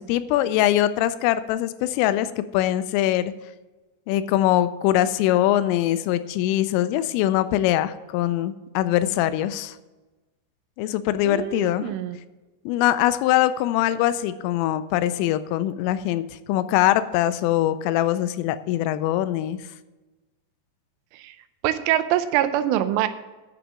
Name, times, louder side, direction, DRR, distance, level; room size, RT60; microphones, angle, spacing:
voice 1, 0.0-3.3 4.1-9.8 10.8-11.9 12.7-19.6, left 13 dB, 85° left, 13 dB, 3.2 m, -22 dB
voice 2, 11.2-12.2 21.1-21.4 21.6-23.1, right 12 dB, 85° right, 11 dB, 3.1 m, -24 dB
9.8 x 6.3 x 7.3 m, 1.1 s
omnidirectional pair, 5.7 m